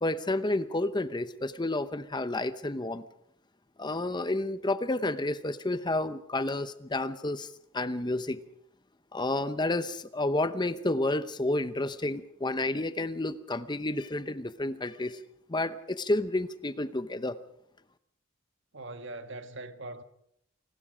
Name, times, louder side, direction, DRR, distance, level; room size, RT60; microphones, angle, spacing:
voice 1, 0.0-3.1 3.8-8.4 9.1-15.2 15.5-17.4, left 2 dB, 20° left, 0.8 m, -30 dB
voice 2, 18.7-20.0, right 2 dB, 60° right, 1.5 m, -41 dB
28.5 x 20.0 x 5.0 m
head